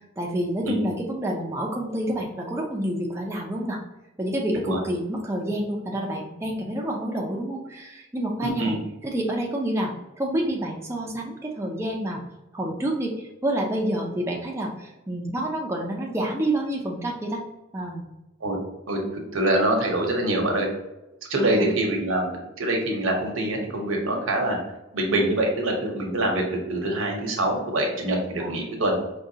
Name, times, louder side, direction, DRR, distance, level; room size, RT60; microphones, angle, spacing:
voice 1, 0.2-3.8 4.2-9.9 10.2-12.2 12.5-17.4 17.7-18.1 21.4-21.7 28.4-28.6, right 1 dB, 15° right, -1 dB, 0.4 m, -28 dB
voice 2, 8.4-8.8 18.4-18.6 18.9-19.0 19.3-20.7 21.3-24.6 24.9-26.4 26.7-29.0, right 1 dB, 80° right, 1 dB, 0.9 m, -24 dB
4.9 x 2.2 x 2.7 m, 0.97 s
head